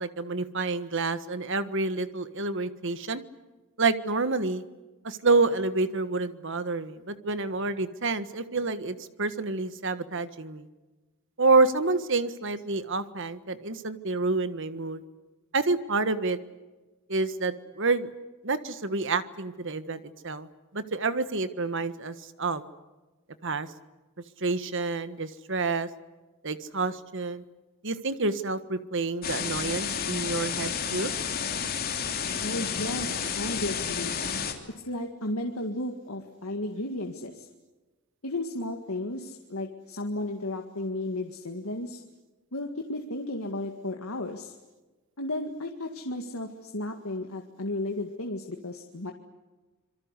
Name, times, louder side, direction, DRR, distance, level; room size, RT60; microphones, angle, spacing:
voice 1, 0.0-3.2 3.8-4.6 5.0-10.7 11.4-15.0 15.5-16.4 17.1-18.1 18.4-20.5 20.7-22.6 23.4-23.7 24.4-25.9 26.4-27.4 27.8-31.1, right 3 dB, 55° right, 12 dB, 1.5 m, -28 dB
sound 1, 29.2-34.5, left 7 dB, 40° left, 3.1 m, -31 dB
voice 2, 32.4-34.2 34.8-37.5 38.2-42.0 42.5-44.5 45.2-49.1, left 1 dB, 70° left, 3 dB, 2.0 m, -34 dB
27.0 x 23.0 x 8.3 m, 1.2 s
head